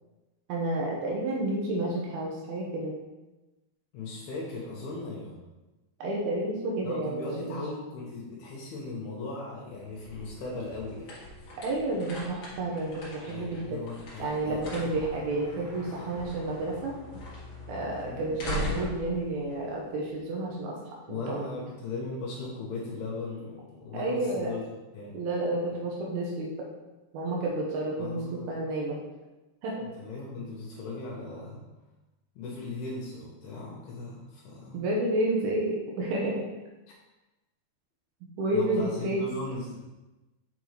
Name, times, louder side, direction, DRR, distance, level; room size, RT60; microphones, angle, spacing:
voice 1, 0.5-3.0 6.0-7.6 11.6-13.8 14.2-17.0 17.7-20.8 21.1-21.5 23.9-24.5 25.1-26.5 27.1-29.0 29.6-29.9 34.7-36.4 38.4-39.2, right 2 dB, 80° right, -2 dB, 2.8 m, -30 dB
voice 2, 3.9-5.4 6.8-11.1 13.3-16.2 18.0-18.3 21.1-24.6 24.9-25.2 28.0-28.5 29.8-31.6 32.4-34.8 38.5-39.8, left 3 dB, 80° left, -3 dB, 2.8 m, -38 dB
sound 1, 9.7-20.4, left 1 dB, 50° left, 1.5 m, -40 dB
7.2 x 5.2 x 3.2 m, 1.1 s
omnidirectional pair, 4.5 m